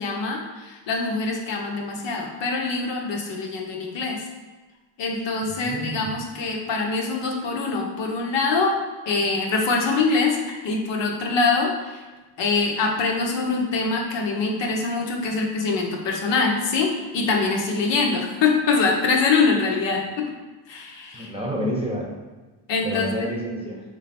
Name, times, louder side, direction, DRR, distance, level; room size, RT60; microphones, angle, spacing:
voice 1, 0.0-4.2 5.0-8.8 9.1-12.0 12.4-20.3 20.7-21.3 22.7-23.3, left 4 dB, 65° left, 0 dB, 0.9 m, -24 dB
voice 2, 5.4-6.1 21.1-22.1 22.8-23.8, equal, 10° right, -2 dB, 0.8 m, -29 dB
3.4 x 3.2 x 4.3 m, 1.3 s
cardioid pair, 110°, 46 cm